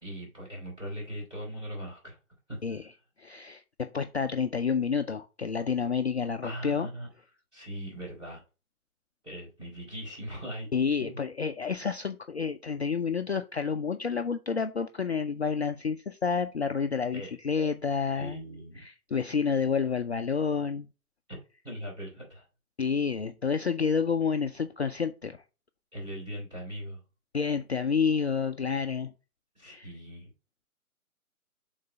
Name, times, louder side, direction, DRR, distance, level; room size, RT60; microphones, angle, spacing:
voice 1, 0.0-2.2 2.5-2.6 6.4-7.1 7.5-8.4 9.2-10.7 11.0-11.2 17.1-17.3 18.2-18.8 21.3-21.4 21.6-22.4 25.9-27.0 29.6-30.3, equal, 10° right, 3.5 m, -40 dB
voice 2, 3.2-6.9 10.7-18.4 18.8-20.9 22.8-25.4 27.3-29.1 29.6-29.9, left 6 dB, 50° left, 0.5 m, -29 dB
6.5 x 3.9 x 4.9 m
figure-of-eight pair, 145°, 44 cm